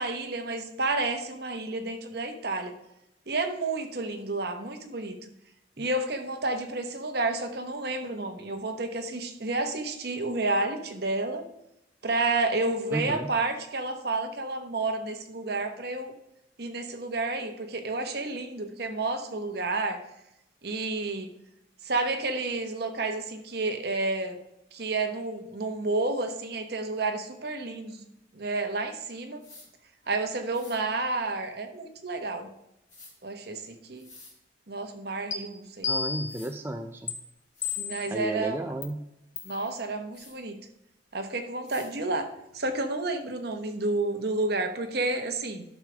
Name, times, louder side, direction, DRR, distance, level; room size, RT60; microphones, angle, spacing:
voice 1, 0.0-2.7 3.3-5.3 5.8-11.4 12.0-16.1 16.6-20.0 20.6-21.3 21.8-24.4 24.7-28.0 28.3-29.4 30.1-32.5 33.2-34.1 34.7-35.9 37.8-38.6 39.4-40.6 41.1-42.3 42.5-45.6, right 2 dB, 55° right, 5 dB, 1.1 m, -30 dB
voice 2, 12.9-13.3 35.8-37.2 38.1-39.0, right 1 dB, 10° right, 5 dB, 0.4 m, -33 dB
sound 1, 29.4-29.7 30.5-30.8 32.9-33.1 34.0-34.3 35.8-35.9 36.3-36.5 37.2-37.3 37.5-37.8 40.1-40.3 41.6-41.9, left 3 dB, 40° left, 3.8 m, -50 dB
sound 2, 35.3-35.4 35.8-36.4 37.1-37.2 37.6-38.1 38.8-38.9 39.4-39.6, left 5 dB, 75° left, 1.4 m, -31 dB
11.5 x 6.4 x 3.4 m, 0.84 s
head